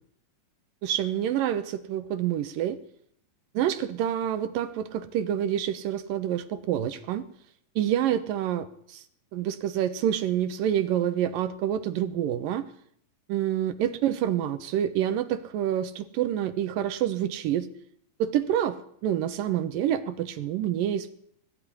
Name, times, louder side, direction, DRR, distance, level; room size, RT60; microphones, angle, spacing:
voice 1, 0.8-2.8 3.5-7.2 7.8-9.0 9.3-12.7 13.3-17.7 18.2-21.1, right 10 dB, 80° right, 11 dB, 2.8 m, -27 dB
21.5 x 15.0 x 9.9 m, 0.68 s
omnidirectional pair, 3.9 m